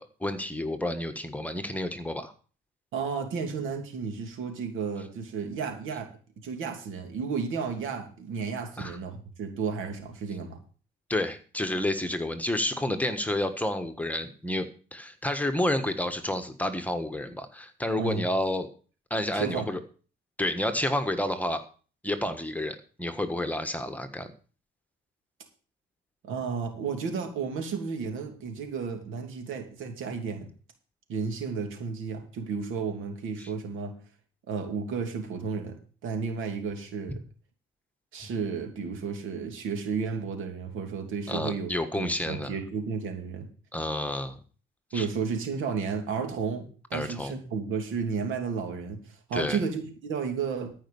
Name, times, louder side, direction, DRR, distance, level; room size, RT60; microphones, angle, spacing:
voice 1, 0.0-2.3 8.8-9.0 11.1-18.7 19.1-19.8 20.4-21.6 22.0-24.3 33.4-33.5 41.3-42.5 43.7-44.4 44.9-45.1 46.9-47.3 49.3-49.6, left 1 dB, 5° left, 8 dB, 1.5 m, -30 dB
voice 2, 2.9-6.1 6.4-10.6 18.0-18.3 19.3-19.7 26.2-30.5 31.1-33.9 34.5-35.8 36.0-37.2 38.1-43.5 44.9-50.7, right 5 dB, 85° right, 4 dB, 2.9 m, -32 dB
14.0 x 5.5 x 7.2 m, 0.39 s
cardioid pair, 90°, 20 cm